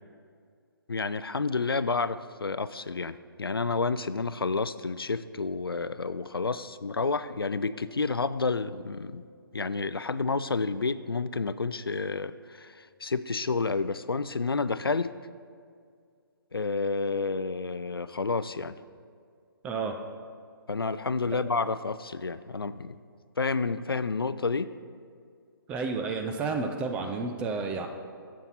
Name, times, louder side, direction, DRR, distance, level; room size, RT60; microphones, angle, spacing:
voice 1, 0.9-9.2 9.5-15.1 16.5-18.8 20.7-23.0 23.4-24.7, left 4 dB, 80° left, 15 dB, 0.4 m, -30 dB
voice 2, 19.6-20.0 25.7-27.9, right 4 dB, 10° right, 4 dB, 0.4 m, -31 dB
10.5 x 7.5 x 4.1 m, 2.2 s
figure-of-eight pair, 135°, 12 cm